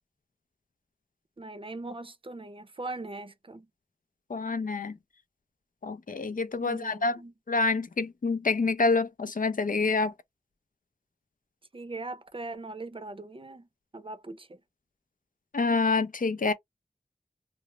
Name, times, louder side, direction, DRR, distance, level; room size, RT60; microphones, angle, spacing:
voice 1, 1.4-3.7 6.6-7.3 11.7-13.7 13.9-14.6, right 2 dB, 35° right, 0.6 m, -40 dB
voice 2, 4.3-4.9 5.8-7.2 7.5-10.1 15.5-16.5, left 3 dB, 60° left, 0.5 m, -27 dB
2.2 x 2.0 x 3.0 m
wide cardioid pair, 45°, 16 cm